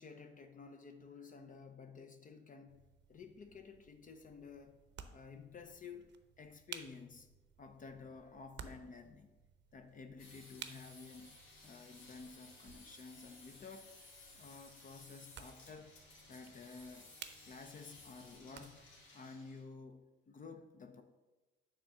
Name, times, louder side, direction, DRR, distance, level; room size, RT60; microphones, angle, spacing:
voice 1, 0.0-2.8 3.1-4.8 5.1-6.1 6.4-7.3 7.6-9.3 9.7-11.4 11.6-13.9 14.3-15.9 16.3-17.1 17.4-18.8 19.1-20.0 20.3-21.0, left 4 dB, 40° left, 7 dB, 0.6 m, -52 dB
sound 1, 2.7-19.1, right 8 dB, 65° right, 0.6 m, -56 dB
sound 2, 10.2-19.6, left 2 dB, 85° left, 1.8 m, -58 dB
6.7 x 3.8 x 6.0 m, 1.2 s
cardioid pair, 90°, 20 cm